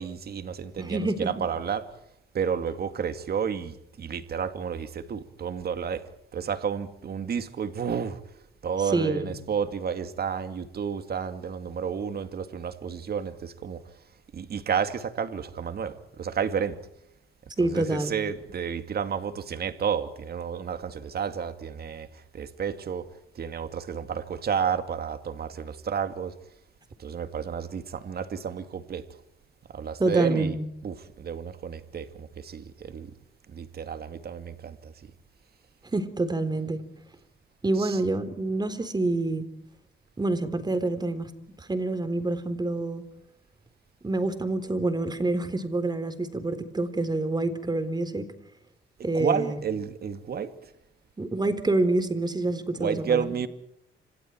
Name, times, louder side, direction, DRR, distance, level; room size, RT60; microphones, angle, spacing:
voice 1, 0.0-1.9 2.3-8.2 8.6-14.0 14.3-16.8 17.6-23.1 23.3-26.4 27.0-29.0 29.7-30.6 30.8-33.1 33.5-35.1 37.7-38.0 49.1-50.7 52.8-53.5, right 7 dB, 50° right, 2.4 m, -31 dB
voice 2, 0.8-1.3 8.9-9.3 17.6-18.1 30.0-30.6 35.9-36.8 37.6-39.5 40.2-41.3 41.6-43.1 44.0-48.3 49.0-49.6 51.2-53.3, right 2 dB, 20° right, 3.9 m, -27 dB
30.0 x 27.5 x 4.6 m
cardioid pair, 90°, 20 cm